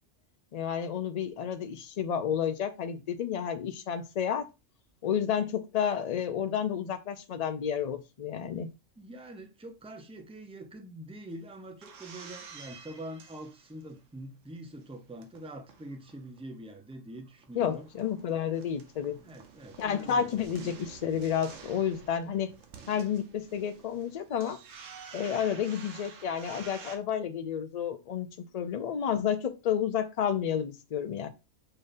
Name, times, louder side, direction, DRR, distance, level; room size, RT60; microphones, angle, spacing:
voice 1, 0.5-4.5 5.0-8.7 17.5-19.2 19.8-22.5 22.9-24.6 25.1-28.3 28.5-31.3, left 8 dB, 55° left, 0.4 m, -31 dB
voice 2, 9.0-17.9 19.2-20.4, right 1 dB, 10° right, 0.4 m, -44 dB
sound 1, 11.3-14.2 14.6-16.6 16.9-17.0 17.2-27.0, right 6 dB, 85° right, 1.2 m, -50 dB
5.0 x 3.9 x 2.6 m
omnidirectional pair, 1.3 m